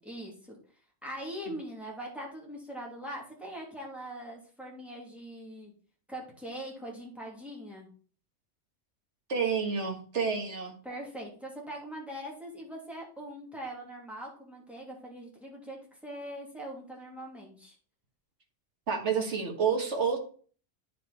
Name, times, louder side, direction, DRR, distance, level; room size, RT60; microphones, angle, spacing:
voice 1, 0.0-0.5 1.0-5.7 6.1-7.9 10.8-17.7, right 1 dB, ahead, -3 dB, 2.8 m, -42 dB
voice 2, 9.3-10.8 18.9-20.2, right 6 dB, 70° right, 2 dB, 1.9 m, -29 dB
9.4 x 5.3 x 4.2 m, 0.42 s
omnidirectional pair, 1.2 m